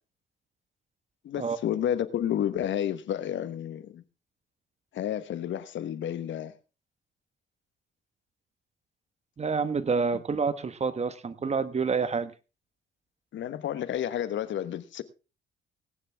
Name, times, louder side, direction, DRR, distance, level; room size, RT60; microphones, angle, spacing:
voice 1, 1.2-4.0 4.9-6.5 13.3-15.0, left 10 dB, 70° left, 1.2 m, -31 dB
voice 2, 9.4-12.3, right 5 dB, 35° right, 1.3 m, -28 dB
19.0 x 9.9 x 3.5 m
cardioid pair, 90°, 20 cm